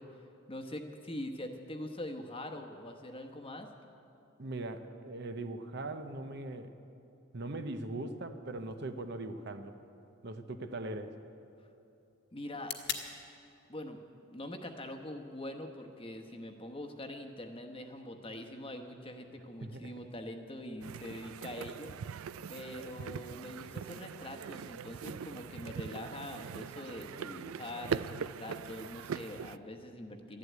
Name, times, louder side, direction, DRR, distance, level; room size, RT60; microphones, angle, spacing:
voice 1, 0.0-3.7 12.3-12.7 13.7-14.0 14.3-21.9 22.5-30.4, left 1 dB, 25° left, 5 dB, 1.0 m, -43 dB
voice 2, 4.4-6.7 7.3-9.7 10.2-11.1 19.6-19.9, right 2 dB, 50° right, 8 dB, 0.8 m, -40 dB
sound 1, 8.6-16.6, left 8 dB, 50° left, 1.3 m, -48 dB
sound 2, 20.8-29.6, right 7 dB, 80° right, 0.4 m, -41 dB
13.5 x 11.0 x 9.4 m, 2.7 s
head